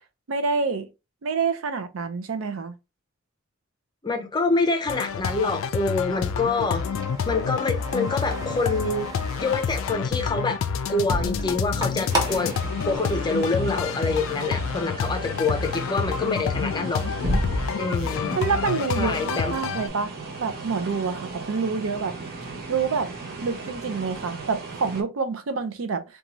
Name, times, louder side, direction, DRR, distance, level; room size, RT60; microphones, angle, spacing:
voice 1, 0.3-0.9 1.2-2.7 18.4-22.1 22.7-23.1 23.4-26.0, right 5 dB, 70° right, 0.5 m, -27 dB
voice 2, 4.0-6.8 7.3-9.1 9.4-10.6 10.9-12.5 12.9-17.0 17.8-18.4 19.0-19.5, left 3 dB, 20° left, 0.5 m, -26 dB
sound 1, 4.9-19.9, left 6 dB, 70° left, 0.3 m, -28 dB
sound 2, 5.0-14.0 14.4-14.9 15.5-15.7 16.0-17.7, right 1 dB, 20° right, 0.7 m, -33 dB
sound 3, 12.1-25.0, right 3 dB, 50° right, 0.9 m, -37 dB
2.6 x 2.3 x 2.9 m
head